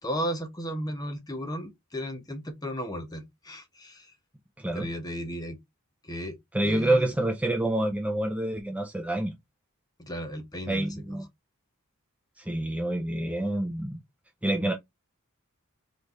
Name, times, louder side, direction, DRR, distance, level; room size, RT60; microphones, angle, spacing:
voice 1, 0.0-4.1 4.7-5.6 6.0-7.1 10.0-11.2, equal, 20° left, 0.9 m, -35 dB
voice 2, 4.6-4.9 6.5-9.3 10.7-11.2 12.4-14.0 14.4-14.7, right 1 dB, 5° right, 0.5 m, -27 dB
3.9 x 3.3 x 3.5 m
head